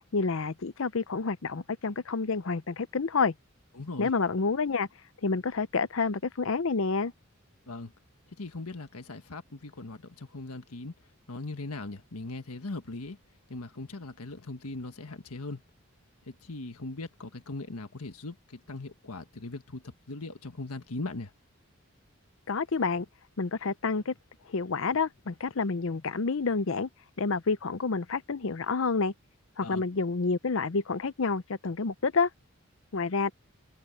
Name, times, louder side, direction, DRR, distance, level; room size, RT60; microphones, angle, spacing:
voice 1, 0.1-3.3 4.0-4.9 5.2-7.1 22.5-23.1 23.4-24.1 24.5-26.9 27.2-29.1 29.6-32.3 32.9-33.3, left 4 dB, 65° left, 0.6 m, -28 dB
voice 2, 3.7-4.1 7.7-7.9 8.4-10.9 11.3-13.2 13.5-15.6 16.3-21.3 29.6-29.8, left 2 dB, 90° left, 1.5 m, -39 dB
head